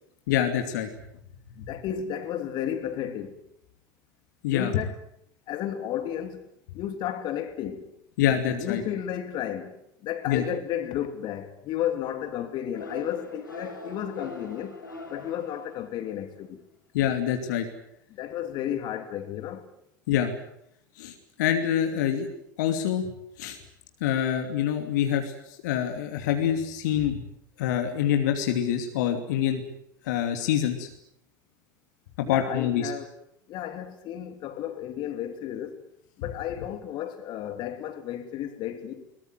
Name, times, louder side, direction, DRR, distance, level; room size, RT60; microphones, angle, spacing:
voice 1, 0.3-0.9 1.6-1.7 4.4-4.7 8.2-8.8 10.3-10.4 16.9-17.7 20.1-20.3 21.0-22.3 22.6-23.1 23.4-23.6 24.0-25.3 25.6-27.2 27.6-29.6 30.0-30.9 32.2-32.9, left 10 dB, 65° left, 2.7 m, -26 dB
voice 2, 1.6-3.3 4.5-5.0 5.5-6.5 6.7-7.8 8.5-9.7 10.0-14.8 15.1-16.6 18.1-19.7 32.2-33.1 33.5-35.8 36.2-39.0, left 10 dB, 45° left, 3.1 m, -33 dB
sound 1, 12.7-16.3, left 2 dB, 85° left, 7.3 m, -42 dB
22.5 x 20.5 x 9.3 m
figure-of-eight pair, 80°, 10 cm